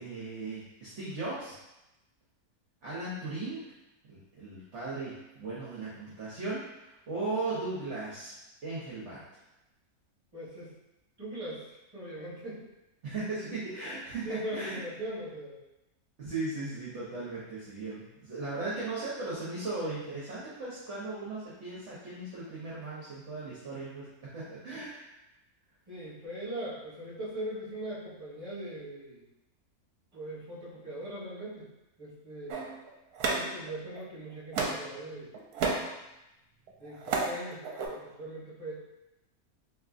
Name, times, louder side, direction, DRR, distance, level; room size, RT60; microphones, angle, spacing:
voice 1, 0.0-1.6 2.8-3.6 4.0-8.4 8.6-9.2 13.0-14.8 16.2-25.1, right 3 dB, 55° right, -8 dB, 1.0 m, -37 dB
voice 2, 10.3-10.7 11.2-11.7 11.9-12.6 14.2-15.6 25.9-29.2 30.1-31.7 32.0-32.6 33.3-35.3 36.8-38.7, right 1 dB, 25° right, -9 dB, 1.5 m, -40 dB
sound 1, 32.5-34.0 34.5-34.9 35.3-35.9 36.7-37.3 37.6-37.9, right 4 dB, 75° right, 1.1 m, -31 dB
3.6 x 3.1 x 2.5 m, 0.93 s
omnidirectional pair, 1.7 m